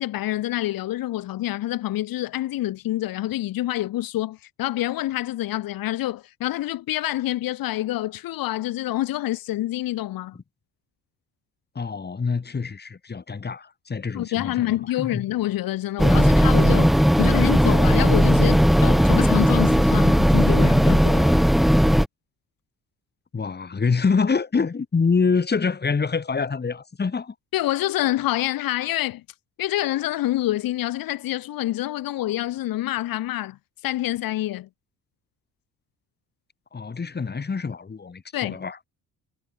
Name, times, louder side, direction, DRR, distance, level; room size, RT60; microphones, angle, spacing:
voice 1, 0.0-10.4 14.1-21.4 27.5-29.2 29.6-33.6 33.8-34.7 38.3-38.6, left 15 dB, 75° left, 3.4 m, -27 dB
voice 2, 11.8-15.2 23.3-27.3 36.7-38.8, left 5 dB, 30° left, 5.5 m, -26 dB
sound 1, 16.0-22.1, equal, ahead, 0.5 m, -17 dB
cardioid pair, 105°, 34 cm